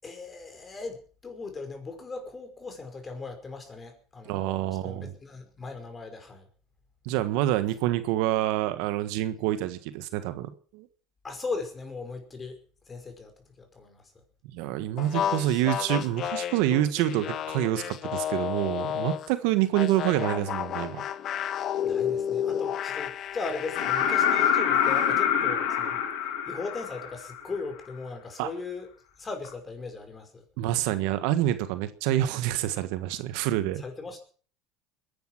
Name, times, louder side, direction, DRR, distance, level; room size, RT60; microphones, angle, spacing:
voice 1, 0.0-6.5 11.2-12.6 12.9-14.0 21.8-26.0 26.5-28.9 29.2-30.4 33.8-34.2, left 4 dB, 25° left, 6 dB, 5.4 m, -38 dB
voice 2, 4.2-5.1 7.0-10.9 14.5-21.0 28.4-28.5 30.6-33.8, right 13 dB, 75° right, 12 dB, 1.4 m, -27 dB
sound 1, 15.0-19.3 19.7-24.6, left 9 dB, 50° left, 1.2 m, -31 dB
sound 2, 23.8-27.5 29.4-29.5, left 8 dB, 75° left, 2.8 m, -25 dB
21.5 x 10.5 x 6.1 m, 0.43 s
supercardioid pair, 95°, 0 cm